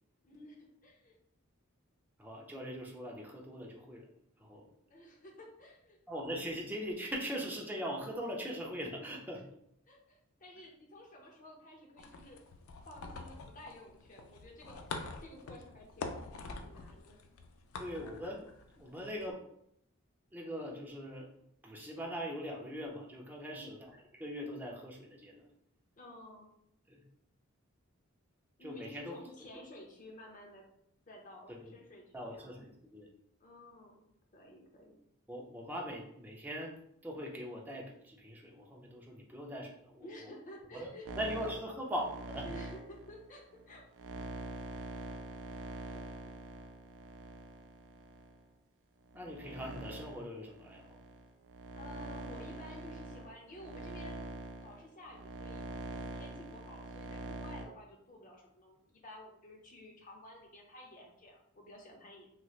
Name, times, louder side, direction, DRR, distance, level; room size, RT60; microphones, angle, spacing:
voice 1, 0.2-1.1 4.8-6.0 9.9-12.4 12.9-14.9 15.2-16.2 16.6-17.2 23.5-23.8 26.0-26.5 28.6-30.6 31.1-32.6 33.4-34.0 34.3-35.0 40.0-41.5 42.4-43.8 45.9-46.0 51.7-54.3 54.6-62.3, left 1 dB, 40° left, 0 dB, 0.7 m, -52 dB
voice 2, 2.2-4.1 4.4-4.7 6.1-9.4 17.8-18.4 18.8-19.4 20.3-21.3 21.6-25.4 26.9-27.0 28.6-29.2 31.6-31.7 32.1-33.1 35.3-36.8 37.0-40.3 40.7-40.9 41.2-42.5 49.1-51.0, equal, 10° right, -1 dB, 0.5 m, -41 dB
sound 1, 12.0-19.3, left 3 dB, 85° left, 0.4 m, -46 dB
sound 2, 41.1-48.4 49.0-57.7, right 2 dB, 90° right, 0.5 m, -44 dB
3.1 x 2.9 x 2.4 m, 0.74 s
head